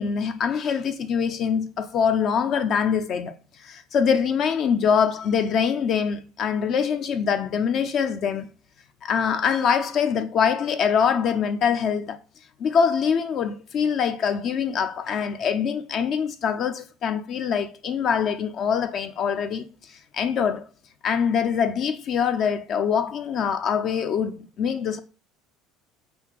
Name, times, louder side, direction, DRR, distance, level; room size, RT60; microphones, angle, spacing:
voice 1, 0.0-3.3 3.6-8.5 9.0-12.2 12.6-20.7 21.0-25.0, left 7 dB, 50° left, 0.4 m, -24 dB
3.4 x 2.3 x 3.3 m
supercardioid pair, 85°, 0 cm